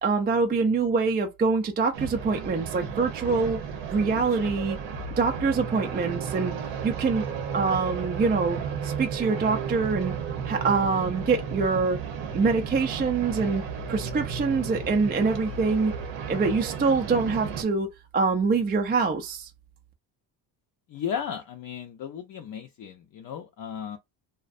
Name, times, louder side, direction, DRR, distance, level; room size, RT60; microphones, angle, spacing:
voice 1, 0.0-3.6 3.9-4.8 5.2-6.5 6.8-7.2 7.5-8.6 8.8-10.1 10.4-12.0 12.3-13.6 13.9-15.9 16.3-19.5, right 4 dB, 25° right, 0.4 m, -25 dB
sound 1, 1.9-17.6, right 6 dB, 80° right, 0.8 m, -33 dB
voice 2, 20.9-24.0, left 8 dB, 50° left, 0.5 m, -35 dB
2.5 x 2.1 x 2.4 m
cardioid pair, 90°, 44 cm